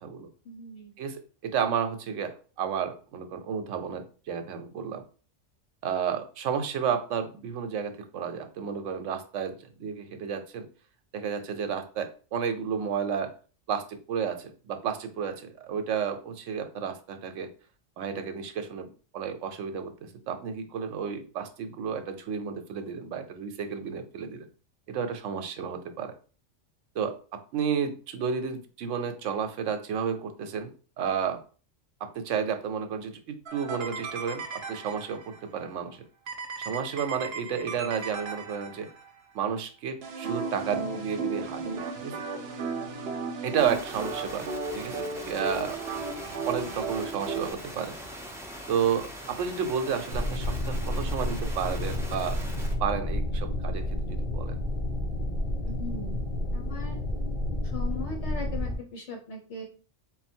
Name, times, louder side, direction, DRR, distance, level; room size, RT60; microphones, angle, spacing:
voice 1, 0.4-0.9 55.6-56.2 56.5-57.0 57.7-59.6, left 3 dB, 70° left, 2 dB, 1.0 m, -39 dB
voice 2, 1.0-5.0 5.8-10.7 11.1-13.3 13.7-17.5 18.0-18.9 19.1-19.9 20.3-24.5 24.9-26.1 26.9-30.7 31.0-31.4 32.0-36.0 36.6-38.9 39.3-42.1 43.4-44.5 44.7-45.8 46.5-48.0 48.7-52.4 52.8-54.6, right 7 dB, 85° right, 6 dB, 1.0 m, -32 dB
sound 1, 33.5-35.4 36.3-39.1 40.0-47.5, right 4 dB, 60° right, 0.9 m, -35 dB
sound 2, 43.6-52.7, equal, 5° right, 0.5 m, -42 dB
sound 3, 50.1-58.8, left 1 dB, 45° left, 0.9 m, -30 dB
3.9 x 2.2 x 4.2 m, 0.38 s
omnidirectional pair, 1.3 m